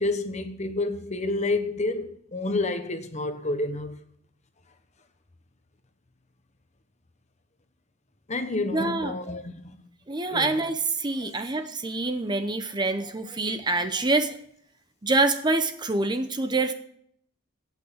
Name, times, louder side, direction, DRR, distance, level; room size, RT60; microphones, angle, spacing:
voice 1, 0.0-4.0 8.3-9.7 10.3-10.6 11.2-11.4, left 2 dB, 35° left, 1.1 m, -29 dB
voice 2, 8.7-9.1 10.1-14.3 15.0-16.7, right 2 dB, 20° right, 0.7 m, -26 dB
16.5 x 6.3 x 7.1 m
head